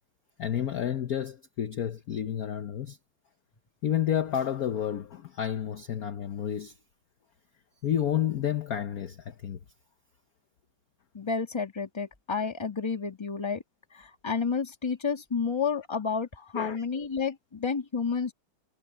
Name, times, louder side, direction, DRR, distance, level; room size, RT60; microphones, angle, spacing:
voice 1, 0.4-3.0 3.8-6.7 7.8-9.6 16.5-16.8, left 10 dB, 55° left, 1.1 m, -30 dB
voice 2, 11.1-13.6 13.9-18.3, left 5 dB, 15° left, 1.4 m, -30 dB
omnidirectional pair, 2.4 m